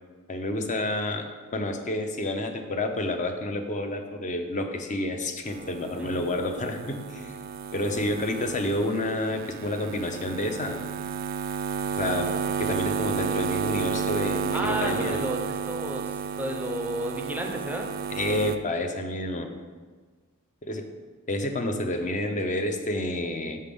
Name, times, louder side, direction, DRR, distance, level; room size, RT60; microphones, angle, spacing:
voice 1, 0.3-1.2 1.5-7.4 7.7-10.8 12.0-12.3 12.6-15.2 18.1-19.5 20.6-20.9 21.3-23.6, left 1 dB, 35° left, 5 dB, 0.6 m, -29 dB
sound 1, 5.5-18.6, right 6 dB, 45° right, 0.3 m, -32 dB
voice 2, 6.0-6.3 14.5-17.9, right 1 dB, 10° right, 3 dB, 0.6 m, -32 dB
7.5 x 5.6 x 3.5 m, 1.4 s
head